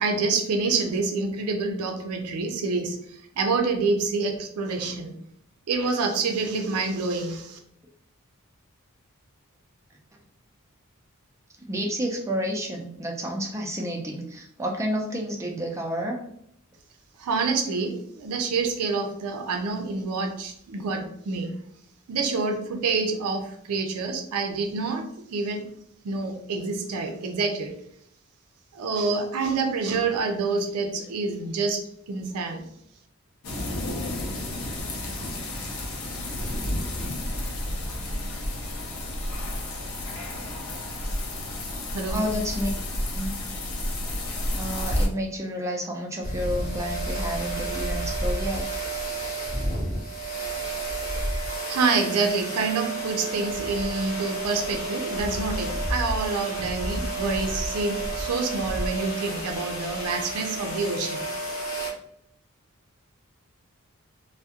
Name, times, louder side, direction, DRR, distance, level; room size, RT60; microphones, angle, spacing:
voice 1, 0.0-5.2 5.7-7.6 17.2-21.6 22.1-25.0 25.3-25.6 26.0-27.8 28.7-31.8 32.1-32.7 41.9-42.2 51.7-61.2, right 4 dB, 90° right, 4 dB, 0.4 m, -27 dB
voice 2, 11.7-16.2 42.1-42.7 43.1-43.3 44.5-48.6, equal, 15° right, 1 dB, 0.3 m, -30 dB
sound 1, 33.4-45.1, left 1 dB, 80° left, 0.5 m, -31 dB
sound 2, 46.2-61.9, right 2 dB, 40° left, 0.6 m, -31 dB
2.3 x 2.0 x 2.7 m, 0.71 s
head